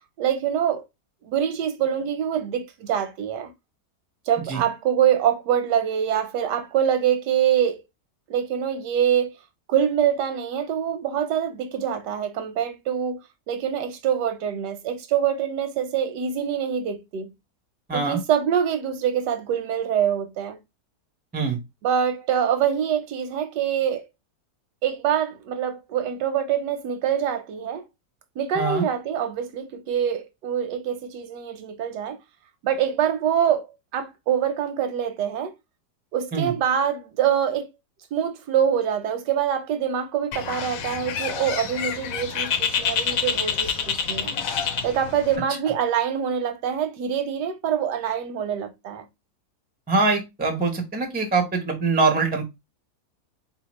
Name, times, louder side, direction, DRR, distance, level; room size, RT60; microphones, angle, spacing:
voice 1, 0.2-0.8 1.2-3.5 4.3-7.8 8.3-9.4 9.7-13.2 13.5-17.3 17.9-20.6 21.8-24.1 24.8-27.8 28.4-32.2 32.6-33.7 33.9-35.5 36.1-37.7 38.1-44.3 44.8-49.0, right 9 dB, 90° right, 1.3 m, -25 dB
voice 2, 17.9-18.2 21.3-21.6 28.5-28.8 36.3-36.5 49.9-52.4, right 4 dB, 10° right, 0.4 m, -23 dB
Bird, 40.3-45.4, left 7 dB, 65° left, 0.9 m, -27 dB
4.0 x 2.8 x 3.0 m
omnidirectional pair, 1.8 m